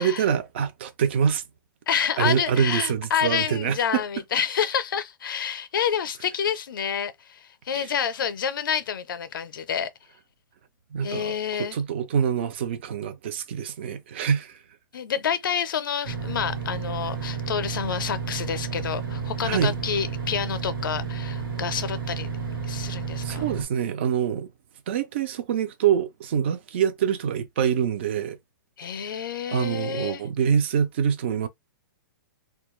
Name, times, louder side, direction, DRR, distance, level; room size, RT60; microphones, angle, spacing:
voice 1, 0.0-1.4 2.2-4.0 7.8-7.9 10.9-11.4 11.7-14.6 19.4-19.8 23.2-24.5 24.9-28.4 29.5-31.5, right 8 dB, 30° right, 0.3 m, -25 dB
voice 2, 1.9-9.9 11.0-11.8 14.9-22.3 22.7-23.4 28.8-30.2, left 8 dB, 70° left, 0.5 m, -28 dB
sound 1, 16.0-23.6, right 6 dB, 85° right, 1.2 m, -31 dB
2.3 x 2.0 x 3.0 m
hypercardioid pair, 175°, 12 cm